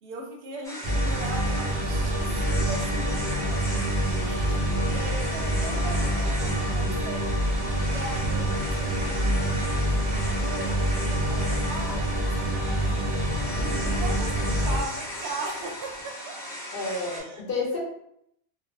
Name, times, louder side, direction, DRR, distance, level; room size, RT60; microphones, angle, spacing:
voice 1, 0.0-3.6 4.2-4.7 4.9-13.3 13.8-16.4 17.1-17.4 17.7-17.8, right 3 dB, 80° right, 1 dB, 0.9 m, -39 dB
sound 1, 0.6-17.2, equal, 5° left, 0.6 m, -37 dB
sound 2, 0.8-14.8, right 1 dB, 60° right, 0.4 m, -26 dB
voice 2, 3.9-5.0 16.7-17.8, left 3 dB, 60° left, -2 dB, 0.8 m, -33 dB
sound 3, 12.8-16.1, equal, 35° left, 1.0 m, -41 dB
2.5 x 2.0 x 2.5 m, 0.75 s
omnidirectional pair, 1.1 m